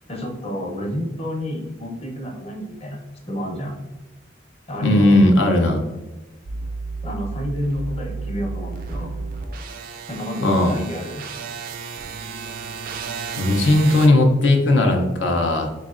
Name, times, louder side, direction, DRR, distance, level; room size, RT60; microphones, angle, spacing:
voice 1, 0.1-3.0 3.3-3.8 4.7-5.2 5.9-6.0 7.0-9.1 10.1-11.3, equal, 30° left, -1 dB, 0.8 m, -29 dB
voice 2, 4.8-5.8 10.4-10.7 13.4-15.7, left 1 dB, 70° left, 3 dB, 0.5 m, -17 dB
sound 1, 6.4-14.1, right 4 dB, 50° right, 0.3 m, -32 dB
3.6 x 3.1 x 2.4 m, 1.1 s
head